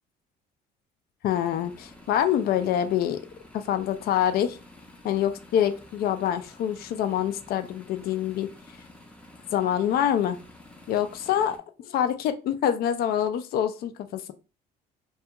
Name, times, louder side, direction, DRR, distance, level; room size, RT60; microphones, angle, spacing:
voice 1, 1.2-3.2 3.5-4.6 5.0-8.5 9.5-10.4 10.9-14.3, left 10 dB, 65° left, 0.4 m, -26 dB
sound 1, 1.3-11.6, left 1 dB, 5° left, 0.5 m, -50 dB
2.3 x 2.3 x 2.8 m
cardioid pair, 110°, 17 cm